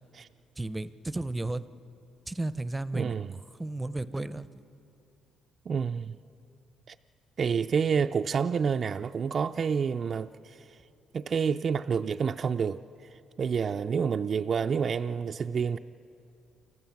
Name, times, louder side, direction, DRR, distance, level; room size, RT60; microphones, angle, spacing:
voice 1, 0.6-1.6 2.3-3.1 3.6-4.6, right 2 dB, 15° right, 0.7 m, -33 dB
voice 2, 2.9-3.3 5.7-6.2 6.9-7.0 7.4-10.7 11.1-12.8 13.4-15.8, right 6 dB, 50° right, 0.4 m, -28 dB
29.0 x 14.0 x 7.2 m
cardioid pair, 80°, 0 cm